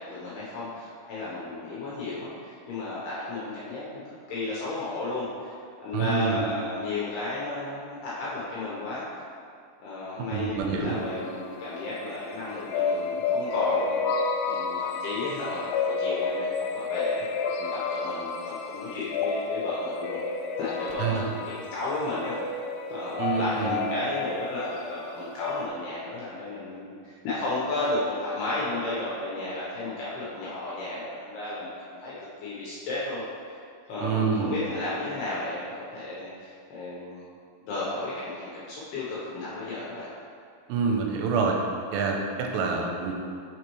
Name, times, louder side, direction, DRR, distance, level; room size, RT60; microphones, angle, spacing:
voice 1, 0.0-4.0 4.3-9.0 9.8-20.2 20.6-22.4 22.9-32.1 32.4-33.2 33.5-33.6 33.9-37.2 37.7-40.1, left 2 dB, 75° left, -8 dB, 2.4 m, -33 dB
voice 2, 5.9-6.4 10.2-11.0 21.0-21.2 23.2-23.8 34.0-34.5 40.7-41.6 41.9-43.1, right 5 dB, 90° right, 1 dB, 3.2 m, -27 dB
sound 1, 10.9-12.1 12.4-25.7, left 4 dB, 90° left, 3.1 m, -30 dB
6.5 x 6.1 x 3.0 m, 2.3 s
omnidirectional pair, 5.7 m